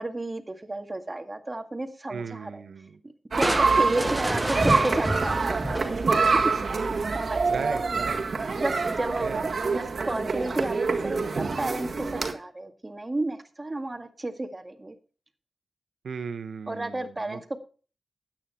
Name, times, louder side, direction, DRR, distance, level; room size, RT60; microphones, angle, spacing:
voice 1, 0.0-2.6 3.3-5.8 6.1-6.5 6.9-7.9 8.6-9.3 9.7-15.0 16.7-17.6, right 2 dB, 30° right, 7 dB, 1.9 m, -32 dB
voice 2, 2.1-3.0 7.5-8.2 9.2-9.4 16.0-17.4, right 5 dB, 80° right, 10 dB, 1.0 m, -36 dB
sound 1, 3.3-12.3, right 4 dB, 60° right, 1.8 m, -26 dB
Crushing, 3.4-6.8, equal, 5° right, 1.0 m, -30 dB
12.5 x 9.1 x 4.4 m, 0.38 s
cardioid pair, 55°, 0 cm